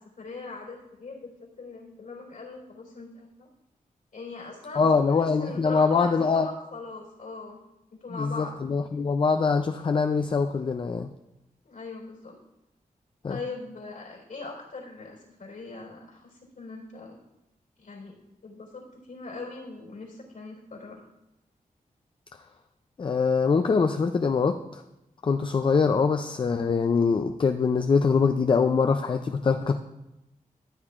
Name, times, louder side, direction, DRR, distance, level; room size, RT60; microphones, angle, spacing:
voice 1, 0.2-3.5 4.1-7.6 7.9-8.6 11.6-12.4 13.3-17.2 17.8-18.1 18.4-21.0, left 3 dB, 75° left, -2 dB, 3.8 m, -41 dB
voice 2, 4.8-6.5 8.1-11.1 13.2-13.4 23.0-24.8 25.2-29.8, left 5 dB, 35° left, 7 dB, 0.4 m, -23 dB
14.5 x 8.6 x 2.4 m, 0.92 s
wide cardioid pair, 135°, 15 cm